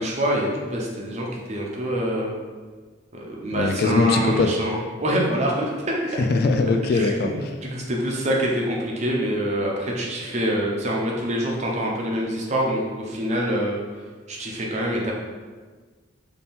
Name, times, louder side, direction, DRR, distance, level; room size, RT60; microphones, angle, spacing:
voice 1, 0.0-2.3 3.1-6.2 6.9-13.8 14.3-15.1, equal, 35° right, -2 dB, 0.7 m, -25 dB
voice 2, 3.5-4.5 6.2-7.5, left 3 dB, 50° left, 5 dB, 0.3 m, -21 dB
3.6 x 2.8 x 4.2 m, 1.4 s
head